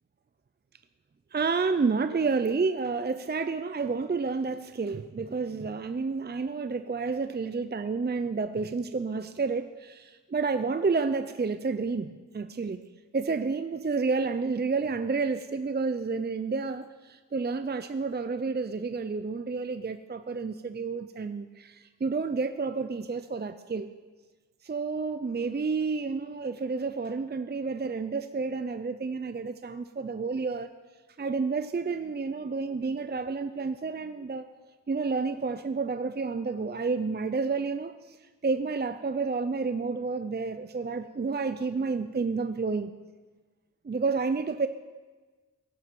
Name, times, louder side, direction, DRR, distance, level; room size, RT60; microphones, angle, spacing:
voice 1, 1.3-12.8 13.1-23.9 24.6-30.7 31.2-34.4 34.9-38.2 38.4-43.0 43.8-44.7, right 4 dB, 30° right, 11 dB, 0.5 m, -30 dB
16.5 x 9.8 x 6.0 m, 1.3 s
wide cardioid pair, 90°, 33 cm